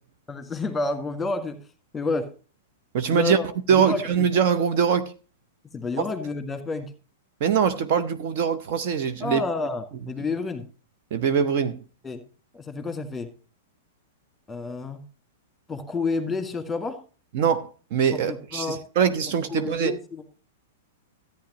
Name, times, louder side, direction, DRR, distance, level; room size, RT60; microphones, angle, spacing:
voice 1, 0.3-1.6 1.9-2.3 3.1-3.5 3.7-4.3 5.7-6.9 9.2-10.7 12.0-12.2 12.5-13.3 14.5-15.0 15.7-17.0 18.1-18.8 19.5-20.2, left 3 dB, 10° left, 1.7 m, -29 dB
voice 2, 2.9-3.4 3.7-5.1 7.4-9.4 11.1-11.8 17.3-19.9, right 7 dB, 45° right, 0.8 m, -23 dB
14.0 x 9.2 x 3.0 m
figure-of-eight pair, 100°, 0 cm